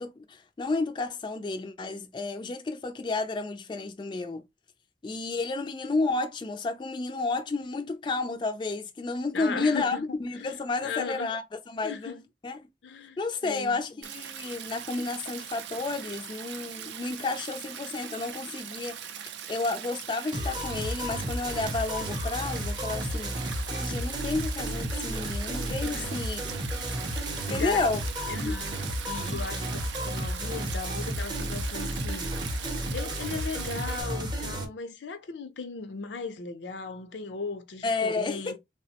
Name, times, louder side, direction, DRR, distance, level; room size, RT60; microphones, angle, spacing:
voice 1, 0.0-4.4 5.0-12.6 13.2-19.1 19.5-23.4 23.7-26.4 26.9-27.0 27.5-28.0 28.4-28.6 29.3-29.7 37.8-38.6, left 3 dB, 25° left, 0.3 m, -31 dB
voice 2, 9.3-10.1 10.3-10.5 10.8-11.3 11.8-12.2 12.8-13.8 25.9-26.2 27.5-28.0 28.3-28.8 29.0-32.5 32.9-38.6, left 4 dB, 85° left, 0.5 m, -37 dB
Stream, 14.0-34.0, right 9 dB, 85° right, 0.4 m, -40 dB
sound 1, 20.3-34.6, equal, 25° right, 0.6 m, -33 dB
3.4 x 2.0 x 2.8 m
head